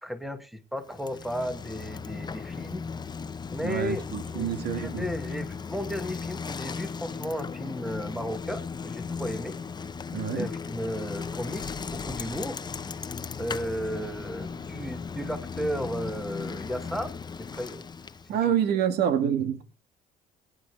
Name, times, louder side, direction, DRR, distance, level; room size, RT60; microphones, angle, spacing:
voice 1, 0.0-2.9 3.5-4.1 4.3-9.6 10.3-12.6 13.4-17.8 18.4-18.5, equal, ahead, 1.5 m, -34 dB
Bicycle, 0.8-18.4, left 5 dB, 25° left, 0.9 m, -36 dB
voice 2, 3.6-5.1 10.1-10.5 18.3-19.6, right 9 dB, 75° right, 1.9 m, -27 dB
22.5 x 9.2 x 3.3 m
cardioid pair, 110°, 17 cm